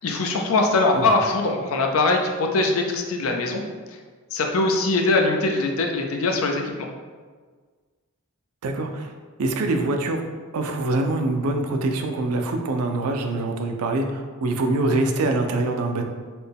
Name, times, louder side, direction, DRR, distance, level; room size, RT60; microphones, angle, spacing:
voice 1, 0.0-3.6 4.3-6.6, left 3 dB, 65° left, 2 dB, 0.5 m, -22 dB
voice 2, 8.6-9.1 9.4-10.2 10.5-16.0, right 2 dB, 80° right, 4 dB, 0.4 m, -24 dB
4.2 x 2.2 x 3.4 m, 1.5 s
head